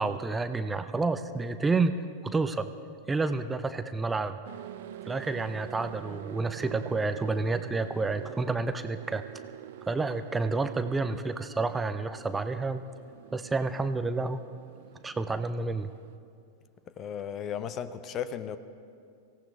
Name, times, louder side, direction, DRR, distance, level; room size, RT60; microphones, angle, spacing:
voice 1, 0.0-1.9 2.2-2.7 3.1-4.4 5.0-9.2 9.9-12.8 13.3-14.4 15.0-15.9, right 3 dB, 10° right, 11 dB, 0.6 m, -29 dB
sound 1, 4.4-16.2, right 11 dB, 55° right, 0.5 m, -46 dB
voice 2, 17.0-18.6, left 8 dB, 30° left, 14 dB, 0.7 m, -35 dB
24.5 x 17.0 x 3.5 m, 2.4 s
figure-of-eight pair, 90°, 0 cm